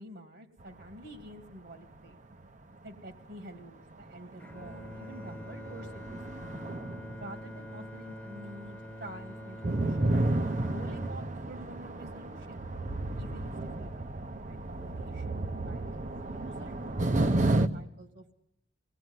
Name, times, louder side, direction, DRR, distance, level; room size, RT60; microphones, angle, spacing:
voice 1, 0.0-2.2 2.8-6.4 7.2-10.2 10.6-12.7 13.1-18.3, right 1 dB, 60° right, 5 dB, 2.3 m, -49 dB
sound 1, 0.6-1.6 1.9-2.2 2.9-3.0 3.6-3.7 4.0-8.4 8.6-17.7, right 2 dB, 40° right, 1.0 m, -32 dB
Bowed string instrument, 4.4-12.6, left 1 dB, 10° left, 1.2 m, -45 dB
26.0 x 19.0 x 9.7 m, 0.83 s
head